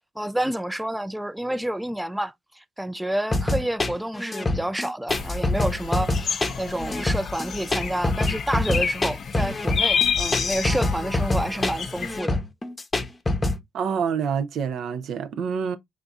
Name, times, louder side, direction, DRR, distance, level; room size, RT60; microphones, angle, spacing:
voice 1, 0.2-12.4, right 1 dB, 5° right, 0.3 m, -29 dB
sound 1, 3.3-13.6, left 2 dB, 20° left, 0.7 m, -25 dB
sound 2, 5.1-12.2, left 6 dB, 55° left, 0.6 m, -29 dB
voice 2, 13.7-15.8, right 6 dB, 75° right, 0.5 m, -27 dB
3.6 x 2.3 x 4.0 m
cardioid pair, 90°, 0 cm